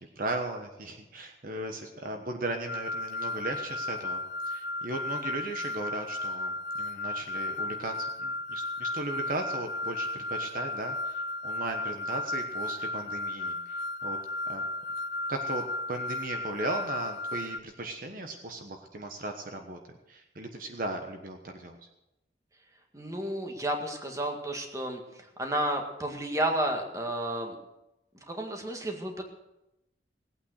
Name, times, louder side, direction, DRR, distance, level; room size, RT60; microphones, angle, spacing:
voice 1, 0.2-14.2 14.5-14.6 15.3-19.8 20.1-21.8, right 2 dB, 50° right, 4 dB, 1.2 m, -37 dB
sound 1, 2.7-17.6, left 2 dB, 65° left, 0.6 m, -34 dB
voice 2, 22.9-25.0 25.4-27.5 28.3-29.2, right 1 dB, 20° right, 3 dB, 1.9 m, -31 dB
18.5 x 8.8 x 6.5 m, 0.92 s
head